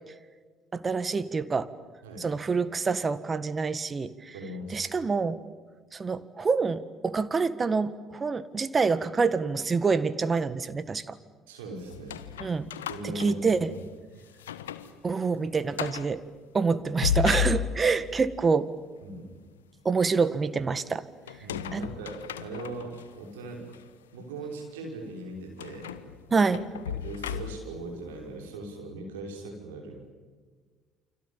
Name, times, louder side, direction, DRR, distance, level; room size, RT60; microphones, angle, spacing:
voice 1, 0.7-1.7 2.2-4.3 4.7-5.4 5.9-11.2 12.4-12.7 13.0-13.8 15.0-16.3 16.5-18.7 19.8-21.0 21.7-21.9 26.3-26.7, right 4 dB, 30° right, 15 dB, 1.7 m, -26 dB
voice 2, 4.3-4.9 11.5-12.2 12.9-13.7 14.1-14.2 19.0-19.3 21.4-23.7 24.1-26.0 26.9-30.0, right 2 dB, 80° right, 2 dB, 5.8 m, -39 dB
sound 1, 11.9-13.9 14.3-14.9 15.2-15.3 15.7-16.1 16.8-18.1 21.3-23.0 23.7-23.8 25.6-27.8, left 9 dB, 85° left, 1.0 m, -34 dB
29.5 x 26.0 x 7.4 m, 1.5 s
hypercardioid pair, 55°, 0 cm